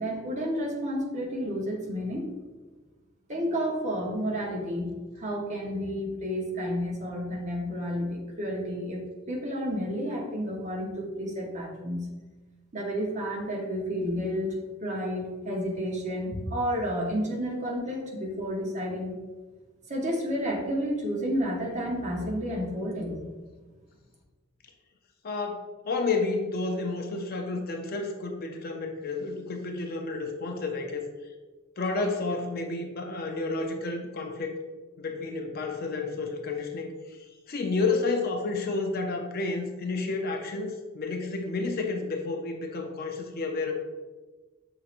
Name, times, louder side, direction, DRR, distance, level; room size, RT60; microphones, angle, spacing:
voice 1, 0.0-2.3 3.3-9.0 9.3-12.1 12.7-14.5 14.8-19.1 19.9-23.3, equal, 35° right, -2 dB, 0.8 m, -31 dB
voice 2, 25.2-31.1 31.8-34.5 35.0-36.9 37.5-43.8, left 3 dB, 50° left, 3 dB, 0.5 m, -30 dB
6.4 x 3.1 x 2.5 m, 1.3 s
head